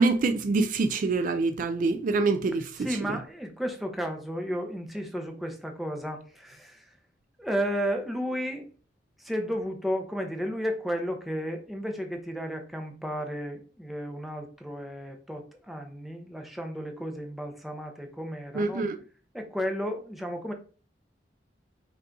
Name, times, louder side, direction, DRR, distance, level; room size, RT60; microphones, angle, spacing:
voice 1, 0.0-2.7 18.6-19.0, right 3 dB, 50° right, 0.3 m, -25 dB
voice 2, 2.8-6.8 7.4-8.7 9.2-18.9 19.3-20.5, equal, ahead, 0.7 m, -33 dB
5.4 x 2.4 x 3.8 m
head